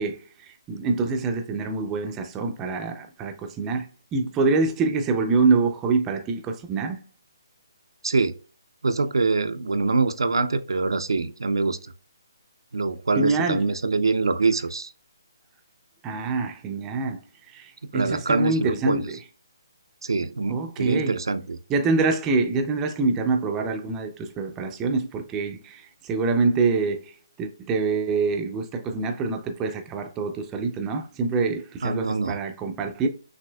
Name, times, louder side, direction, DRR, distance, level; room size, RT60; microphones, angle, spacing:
voice 1, 0.0-7.0 13.2-13.6 16.0-17.2 17.5-19.2 20.5-21.2 21.7-27.1 27.4-33.1, right 4 dB, 10° right, 0.4 m, -25 dB
voice 2, 8.0-8.4 8.8-11.9 12.7-14.9 17.9-19.1 20.0-21.6 31.8-32.4, right 3 dB, 90° right, 0.5 m, -24 dB
6.0 x 2.7 x 2.2 m
hypercardioid pair, 165°, 2 cm